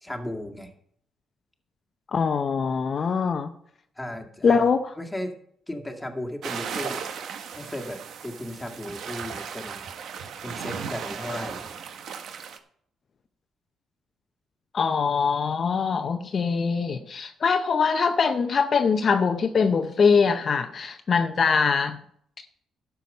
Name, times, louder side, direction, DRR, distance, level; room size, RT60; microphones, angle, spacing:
voice 1, 0.0-0.7 3.0-3.3 4.0-4.7 5.0-5.3 5.7-7.1 7.6-9.9 10.4-11.7, left 1 dB, 10° left, 3 dB, 1.9 m, -35 dB
voice 2, 2.1-3.5 4.4-4.8 14.7-22.0, left 5 dB, 45° left, 7 dB, 0.7 m, -23 dB
sound 1, 6.4-12.6, right 7 dB, 70° right, 1.0 m, -36 dB
12.0 x 7.0 x 5.3 m, 0.67 s
cardioid pair, 90°, 0 cm